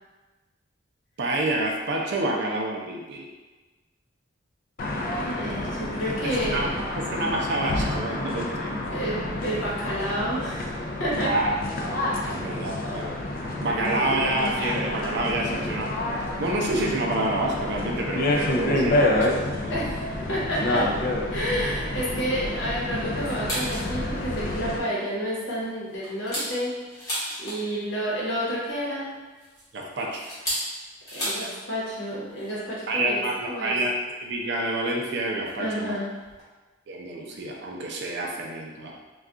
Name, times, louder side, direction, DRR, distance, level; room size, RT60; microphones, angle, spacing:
voice 1, 1.2-3.3 6.5-6.7 7.1-8.8 11.2-11.5 11.9-13.2 13.6-19.9 29.7-30.2 32.9-33.9 34.2-36.0 36.9-39.0, right 2 dB, 60° right, -1 dB, 0.5 m, -28 dB
sound 1, 4.8-24.8, left 1 dB, 45° left, 0.3 m, -28 dB
voice 2, 5.2-6.7 8.9-11.3 19.7-20.9 21.3-26.7 27.4-29.0 31.1-33.7 35.6-36.1, equal, 65° left, -6 dB, 1.0 m, -30 dB
sound 2, 23.2-23.9 24.3-24.4 24.8-25.1 25.6-27.8 29.0-31.6 31.9-32.0 32.3-32.6 33.5-33.6 34.5-34.6 35.5-35.6 36.0-36.1 36.2-36.4, equal, 20° left, 1.0 m, -33 dB
2.3 x 2.3 x 3.7 m, 1.2 s
head